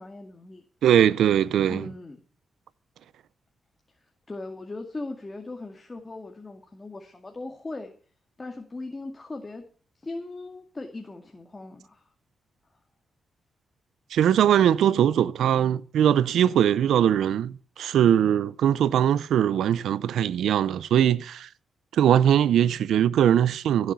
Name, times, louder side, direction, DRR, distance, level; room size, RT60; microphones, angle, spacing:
voice 1, 0.0-0.6 1.7-2.2 4.3-7.9 8.4-9.6 10.0-12.0, left 2 dB, 30° left, 2.3 m, -38 dB
voice 2, 0.8-1.8 14.1-21.5 21.9-23.9, right 10 dB, 85° right, 0.5 m, -21 dB
15.5 x 7.6 x 6.9 m
cardioid pair, 65°, 0 cm